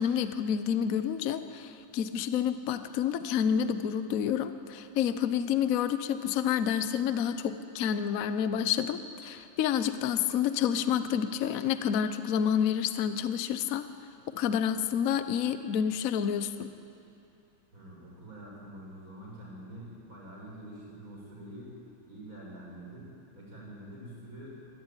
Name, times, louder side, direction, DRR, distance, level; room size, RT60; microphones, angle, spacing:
voice 1, 0.0-13.9 14.3-16.7, left 8 dB, 55° left, 11 dB, 1.0 m, -29 dB
voice 2, 17.7-21.7 22.1-23.1 23.3-24.7, right 1 dB, 40° right, -4 dB, 6.9 m, -46 dB
24.5 x 19.0 x 9.1 m, 2.7 s
omnidirectional pair, 2.3 m